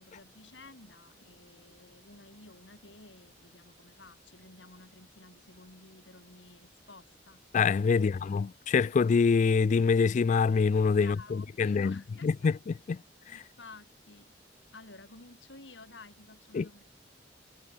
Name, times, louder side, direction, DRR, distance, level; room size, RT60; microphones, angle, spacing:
voice 1, 0.0-7.4 7.9-8.2 11.0-12.5 13.3-14.3 14.7-16.8, left 3 dB, 75° left, 4.4 m, -53 dB
voice 2, 7.5-11.2 11.6-11.9 12.2-13.0 16.5-16.6, left 5 dB, 40° left, 0.3 m, -25 dB
head